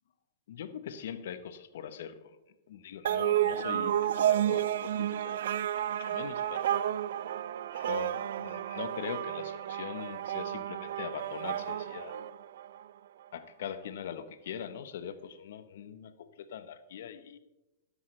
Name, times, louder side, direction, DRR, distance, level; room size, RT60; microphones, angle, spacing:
voice 1, 0.5-2.4 2.7-7.0 7.7-12.3 13.3-17.4, left 8 dB, 70° left, 12 dB, 0.9 m, -42 dB
sound 1, 3.0-12.8, right 11 dB, 70° right, 0.4 m, -31 dB
12.5 x 10.0 x 3.2 m, 0.96 s
hypercardioid pair, 120°, 0 cm